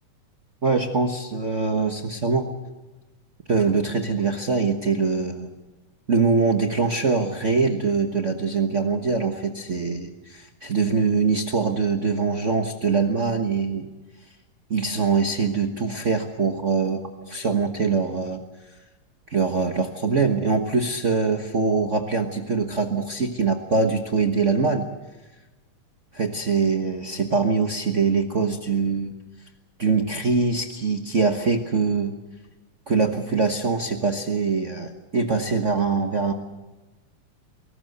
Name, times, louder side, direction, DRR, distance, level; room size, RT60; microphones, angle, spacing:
voice 1, 0.6-2.5 3.5-5.5 6.1-13.9 14.7-18.4 19.3-24.9 26.1-29.1 29.8-32.1 32.9-36.3, right 4 dB, 50° right, 4 dB, 0.8 m, -23 dB
22.5 x 18.0 x 7.9 m, 1.1 s
omnidirectional pair, 3.3 m